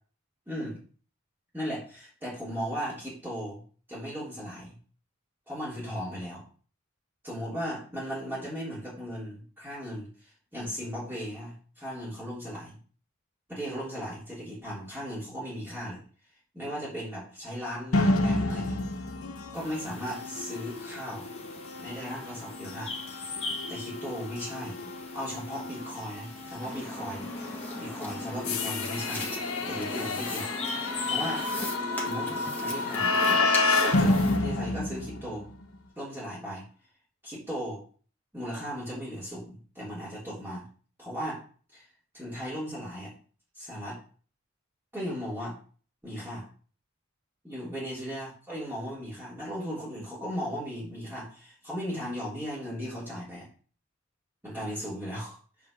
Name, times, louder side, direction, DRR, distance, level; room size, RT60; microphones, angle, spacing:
voice 1, 0.5-0.8 1.5-3.6 3.9-4.7 5.5-6.5 7.2-12.8 13.5-16.0 16.5-18.8 19.5-21.3 21.8-22.9 23.2-23.3 23.7-27.2 27.8-29.2 29.7-31.4 32.0-32.3 32.6-33.2 33.8-35.5 36.0-36.6 37.2-37.8 38.3-40.7 41.0-41.4 41.7-41.9 42.1-43.1 43.6-44.0 44.9-45.6 46.0-46.4 47.4-53.5 54.4-55.4, equal, 10° right, -8 dB, 3.4 m, -37 dB
sound 1, 17.9-35.6, left 2 dB, 90° left, 1.0 m, -30 dB
sound 2, 19.5-31.7, left 4 dB, 30° left, 1.0 m, -42 dB
sound 3, 26.6-34.4, left 1 dB, 10° left, 1.5 m, -37 dB
9.3 x 3.6 x 6.4 m, 0.41 s
head